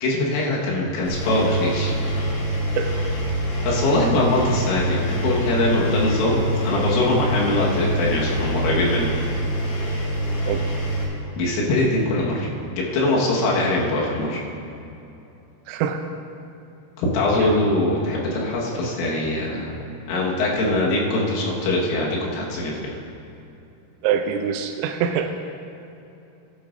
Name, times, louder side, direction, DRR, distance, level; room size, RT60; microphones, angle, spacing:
voice 1, 0.0-2.0 3.7-6.4 6.6-9.1 11.4-12.5 12.9-14.4 17.0-19.7 20.1-22.9, left 2 dB, 75° left, -4 dB, 4.0 m, -22 dB
Engine, 1.0-11.0, right 1 dB, 60° left, 4.0 m, -25 dB
voice 2, 15.7-16.0 24.0-25.3, right 8 dB, 85° right, 6 dB, 3.1 m, -24 dB
16.5 x 12.0 x 2.6 m, 2.8 s
omnidirectional pair, 6.0 m